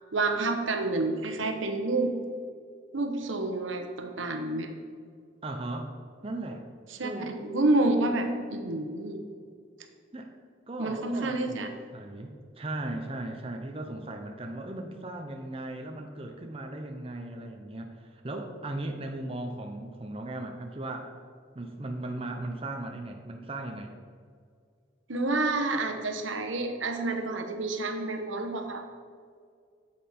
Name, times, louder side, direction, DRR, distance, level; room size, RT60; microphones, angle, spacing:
voice 1, 0.1-2.1 2.9-4.7 6.9-9.2 10.8-11.7 25.1-28.8, right 2 dB, 85° right, 5 dB, 1.1 m, -29 dB
voice 2, 5.4-6.0 6.2-6.7 7.0-7.3 10.1-10.3 10.7-21.1 21.5-23.9, right 2 dB, 30° right, 3 dB, 0.7 m, -37 dB
8.7 x 7.7 x 4.3 m, 2.1 s
head